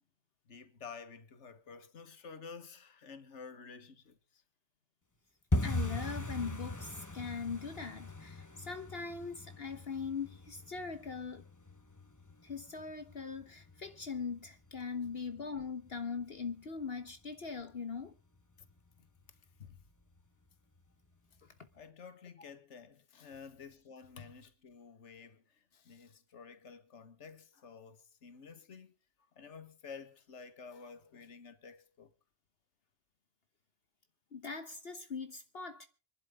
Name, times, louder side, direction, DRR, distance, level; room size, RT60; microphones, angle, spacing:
voice 1, 0.5-4.4 17.6-17.7 19.3-19.8 21.7-28.9 29.4-32.1, left 5 dB, 70° left, 1.7 m, -51 dB
sound 1, 5.5-16.2 16.5-17.2 17.4-17.7 18.0-18.4 18.7-18.8 19.3-19.8 20.2-20.3 20.8-20.9, left 2 dB, 15° left, 1.1 m, -40 dB
voice 2, 5.6-11.4 12.4-18.1 34.3-35.9, left 5 dB, 55° left, 1.4 m, -41 dB
25.5 x 12.0 x 3.6 m
omnidirectional pair, 1.3 m